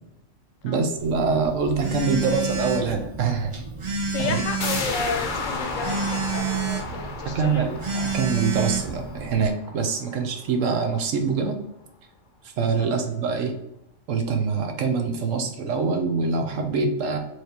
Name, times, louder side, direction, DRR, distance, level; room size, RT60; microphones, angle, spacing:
voice 1, 0.6-3.6 4.2-4.4 7.2-11.6 12.6-13.6 14.1-17.2, right 5 dB, 80° right, 5 dB, 1.1 m, -24 dB
Telephone, 1.0-9.5, right 4 dB, 40° right, 0.4 m, -30 dB
voice 2, 4.1-6.0 6.3-7.7 10.0-10.2 12.8-13.2, left 5 dB, 85° left, 5 dB, 1.0 m, -32 dB
sound 1, 4.6-10.1 10.4-10.5, left 4 dB, 50° left, 0.6 m, -33 dB
4.5 x 3.2 x 2.8 m, 0.84 s
omnidirectional pair, 1.3 m